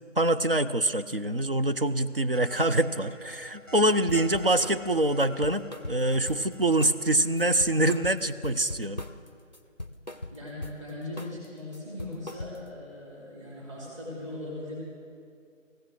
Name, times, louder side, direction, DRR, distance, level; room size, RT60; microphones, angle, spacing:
voice 1, 0.2-9.0, right 1 dB, 45° right, 10 dB, 0.5 m, -25 dB
sound 1, 2.3-8.1, equal, 75° right, 1.6 m, -49 dB
sound 2, 4.1-4.8 5.2-6.5 6.8-7.1 7.4-9.3 9.5-10.8 11.2-11.4 11.7-12.8, left 1 dB, 35° left, 0.5 m, -40 dB
voice 2, 10.3-14.8, left 2 dB, 25° right, -6 dB, 2.8 m, -39 dB
15.5 x 13.0 x 6.3 m, 2.4 s
figure-of-eight pair, 170°, 39 cm